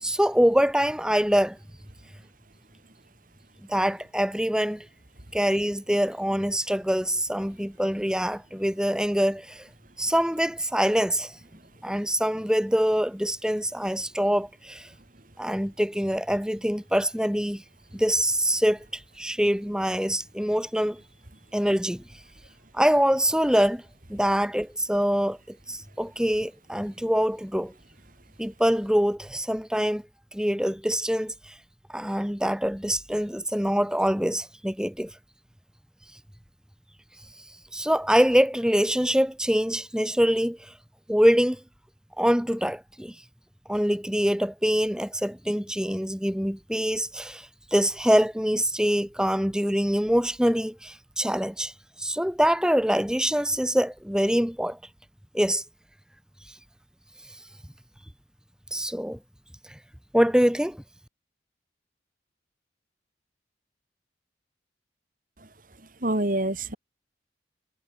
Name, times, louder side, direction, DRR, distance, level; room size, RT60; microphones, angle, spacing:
voice 1, 0.0-1.6 3.7-4.9 5.3-9.7 10.0-11.3 11.8-14.9 15.4-17.6 17.9-21.0 21.5-22.0 22.7-23.8 24.1-27.7 28.4-30.0 30.3-31.5 31.9-35.1 37.7-40.6 41.1-41.6 42.2-43.1 43.7-51.7 52.0-54.8 55.3-55.6 58.7-59.2 60.1-60.8, equal, 5° right, 3.0 m, -24 dB
voice 2, 65.8-66.8, right 1 dB, 45° right, 3.4 m, -28 dB
head